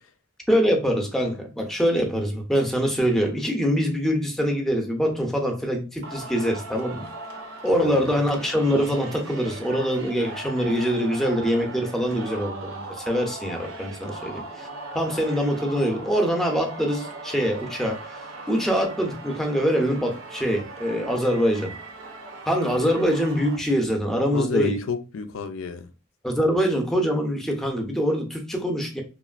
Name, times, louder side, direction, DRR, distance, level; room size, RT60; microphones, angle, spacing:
voice 1, 0.5-7.0 7.6-14.7 14.9-18.2 18.5-21.7 22.5-24.8 26.2-29.0, equal, ahead, 0.5 m, -24 dB
Singing, 6.0-23.6, right 2 dB, 80° right, 0.6 m, -39 dB
voice 2, 7.7-8.2 24.3-25.9, left 5 dB, 90° left, 0.4 m, -30 dB
2.9 x 2.5 x 2.4 m
head